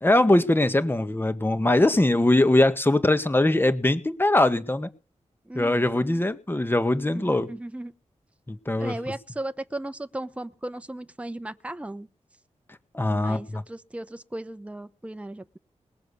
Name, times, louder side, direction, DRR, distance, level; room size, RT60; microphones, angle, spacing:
voice 1, 0.0-4.9 5.5-7.5 8.5-8.9 12.9-13.6, left 1 dB, 20° left, 1.7 m, -21 dB
voice 2, 5.5-6.0 7.1-7.9 8.8-12.1 13.1-15.6, right 1 dB, 10° right, 0.9 m, -36 dB
20.5 x 7.6 x 7.0 m
wide cardioid pair, 95°, 12 cm